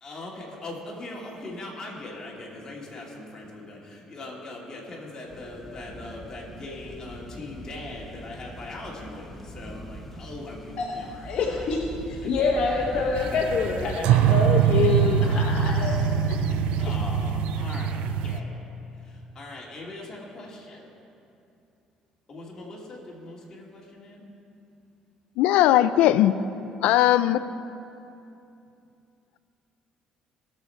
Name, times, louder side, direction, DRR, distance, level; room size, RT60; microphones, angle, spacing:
voice 1, 0.0-11.7 12.2-13.2 16.8-18.6 19.0-20.9 22.3-24.2, left 2 dB, 30° left, -3 dB, 2.2 m, -40 dB
sound 1, 5.3-14.0, equal, 10° left, 0.9 m, -41 dB
voice 2, 11.2-11.8 12.1-16.9, left 4 dB, 60° left, 0 dB, 1.0 m, -27 dB
sound 2, 13.2-18.4, right 8 dB, 85° right, 0.4 m, -23 dB
voice 3, 25.4-26.4 26.8-27.4, left 13 dB, 90° left, 14 dB, 0.4 m, -19 dB
18.0 x 7.0 x 4.5 m, 2.7 s
cardioid pair, 135°, 2 cm